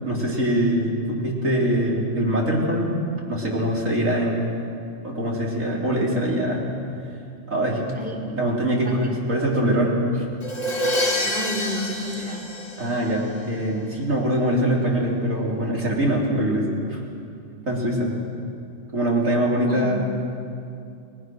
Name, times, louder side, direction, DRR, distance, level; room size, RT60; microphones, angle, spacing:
voice 1, 0.0-2.9 3.3-4.5 5.0-6.7 7.5-7.8 8.3-10.3 12.8-17.0 17.7-18.1 18.9-20.0, right 1 dB, 80° right, -3 dB, 4.3 m, -23 dB
Crash cymbal, 10.4-13.4, left 1 dB, 30° left, 2.2 m, -27 dB
voice 2, 11.2-12.5 19.7-20.0, left 1 dB, 5° right, -2 dB, 3.0 m, -31 dB
29.5 x 20.5 x 6.4 m, 2.5 s
omnidirectional pair, 1.4 m